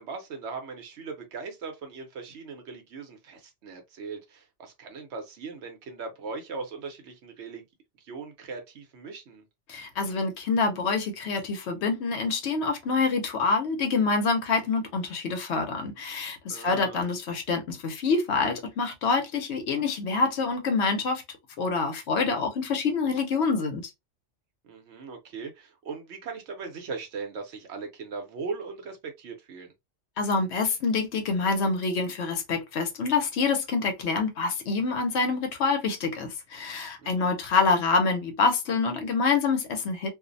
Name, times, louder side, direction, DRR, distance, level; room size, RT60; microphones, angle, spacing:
voice 1, 0.0-7.6 8.0-9.4 16.5-17.1 24.6-29.7 37.0-37.4, right 4 dB, 70° right, 1.0 m, -39 dB
voice 2, 9.7-21.2 21.6-23.8 30.2-40.1, left 4 dB, 70° left, 0.9 m, -26 dB
2.5 x 2.0 x 2.5 m
omnidirectional pair, 1.2 m